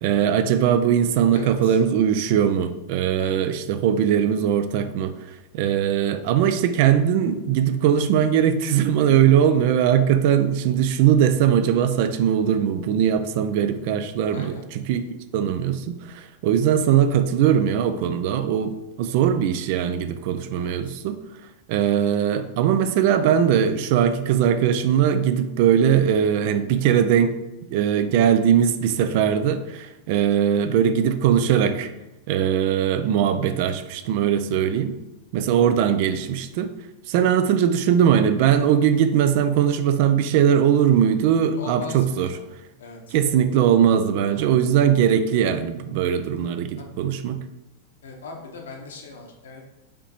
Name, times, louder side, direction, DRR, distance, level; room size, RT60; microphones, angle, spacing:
voice 1, 0.0-5.1 5.5-15.1 15.3-21.2 21.7-27.3 27.7-31.9 32.3-34.9 35.3-36.7 37.1-42.3 43.1-47.4, right 9 dB, 50° right, 10 dB, 0.3 m, -20 dB
voice 2, 1.3-1.8 3.2-3.5 14.3-14.6 20.5-21.0 41.5-42.4 42.8-43.2 44.3-44.5 46.8-46.9 48.0-49.6, left 3 dB, 65° left, 1 dB, 0.9 m, -39 dB
5.0 x 2.9 x 2.9 m, 0.98 s
figure-of-eight pair, 90°, 0 cm